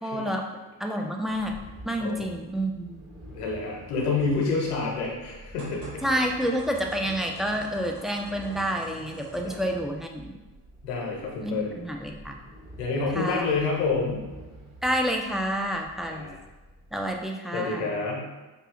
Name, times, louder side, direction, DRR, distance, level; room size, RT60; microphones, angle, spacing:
voice 1, 0.0-0.4 0.8-1.6 1.8-3.0 6.0-10.4 11.4-12.4 13.1-13.5 14.8-16.3 16.9-18.0, equal, ahead, 2 dB, 0.4 m, -29 dB
sound 1, 1.3-17.3, right 1 dB, 30° right, 1.4 m, -48 dB
voice 2, 3.3-6.0 9.4-9.5 10.8-11.7 12.8-14.3 16.1-16.4 17.5-18.3, left 4 dB, 80° left, -2 dB, 0.9 m, -28 dB
sound 2, 5.6-9.8, right 1 dB, 85° right, 1.3 m, -47 dB
4.8 x 2.7 x 2.5 m, 1.2 s
figure-of-eight pair, 40°, 46 cm